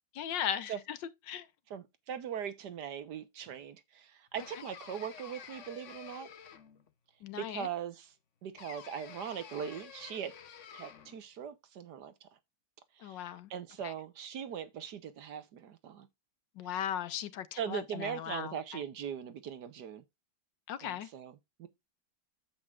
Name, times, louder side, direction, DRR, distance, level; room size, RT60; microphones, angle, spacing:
voice 1, 0.2-1.0 1.3-1.5 7.2-7.7 13.0-13.5 13.8-13.9 16.6-18.6 20.7-21.1, left 9 dB, 75° left, 1.5 m, -37 dB
voice 2, 1.7-6.3 7.4-8.1 8.4-10.3 10.7-12.3 13.0-16.1 17.6-20.0 20.8-21.7, right 8 dB, 65° right, 1.5 m, -40 dB
sound 1, 4.3-6.9 8.6-11.2, left 8 dB, 55° left, 0.9 m, -50 dB
9.8 x 7.8 x 2.4 m
omnidirectional pair, 2.0 m